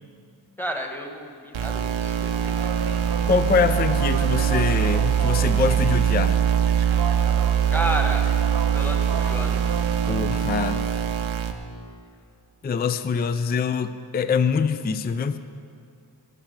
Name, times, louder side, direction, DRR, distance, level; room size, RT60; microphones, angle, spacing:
voice 1, 0.6-2.7 7.7-8.2 8.7-9.6, equal, 5° left, 2 dB, 1.3 m, -31 dB
sound 1, 1.5-11.5, right 9 dB, 90° right, 0.8 m, -22 dB
sound 2, 2.3-10.2, right 4 dB, 55° right, 0.8 m, -35 dB
voice 2, 3.3-6.5 10.1-10.8 12.6-15.4, left 5 dB, 25° left, 12 dB, 0.4 m, -24 dB
12.5 x 6.0 x 8.2 m, 2.4 s
wide cardioid pair, 75°, 46 cm